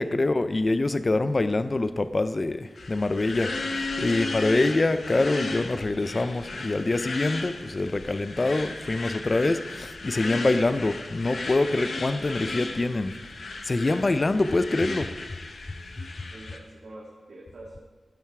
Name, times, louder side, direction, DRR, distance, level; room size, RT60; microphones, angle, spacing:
voice 1, 0.0-13.1 13.6-15.1, left 2 dB, 35° left, 11 dB, 0.4 m, -25 dB
sound 1, 2.8-16.6, left 3 dB, 65° left, 1.0 m, -35 dB
voice 2, 15.9-17.8, right 1 dB, 70° right, -4 dB, 1.9 m, -46 dB
15.0 x 5.7 x 4.7 m, 1.4 s
wide cardioid pair, 90°, 0 cm